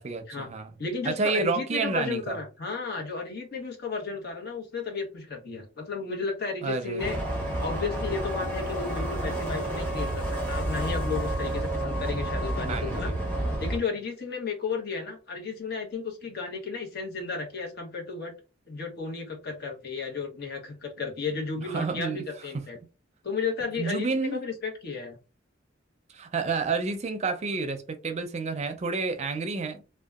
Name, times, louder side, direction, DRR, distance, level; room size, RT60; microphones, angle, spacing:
voice 1, 0.0-0.7 1.0-2.4 6.6-7.2 12.7-13.3 21.6-22.2 22.5-22.6 23.8-24.4 26.1-29.8, right 4 dB, 35° right, 0.4 m, -30 dB
voice 2, 0.8-7.2 7.5-13.1 13.6-18.3 18.7-22.8 23.2-25.2, left 4 dB, 55° left, 0.9 m, -33 dB
sound 1, 7.0-13.8, right 1 dB, 10° left, 0.8 m, -30 dB
2.7 x 2.2 x 2.3 m
head